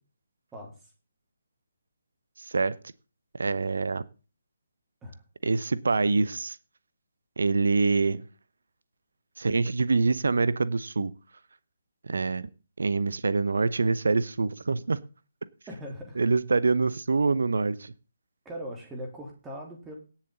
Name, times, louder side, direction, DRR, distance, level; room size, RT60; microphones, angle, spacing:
voice 1, 0.5-0.9 5.0-5.2 15.7-16.2 18.5-20.0, equal, 10° right, 3.5 m, -40 dB
voice 2, 2.4-2.8 3.3-4.0 5.4-6.6 7.4-8.2 9.4-11.1 12.0-12.5 12.8-15.0 16.2-17.9, right 4 dB, 60° right, 0.7 m, -25 dB
17.5 x 7.4 x 4.0 m
figure-of-eight pair, 140°, 0 cm